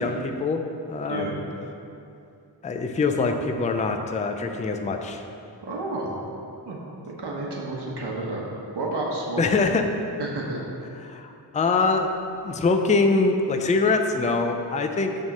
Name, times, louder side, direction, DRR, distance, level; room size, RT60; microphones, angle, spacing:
voice 1, 0.0-1.3 2.6-5.2 9.4-9.9 11.1-12.1 12.4-15.2, left 3 dB, 15° left, 5 dB, 0.4 m, -24 dB
voice 2, 1.0-1.4 5.6-6.1 6.6-6.8 7.1-8.4 8.7-9.7 10.2-10.6, right 2 dB, 65° right, -3 dB, 1.3 m, -30 dB
8.8 x 3.6 x 6.4 m, 2.6 s
wide cardioid pair, 115°, 43 cm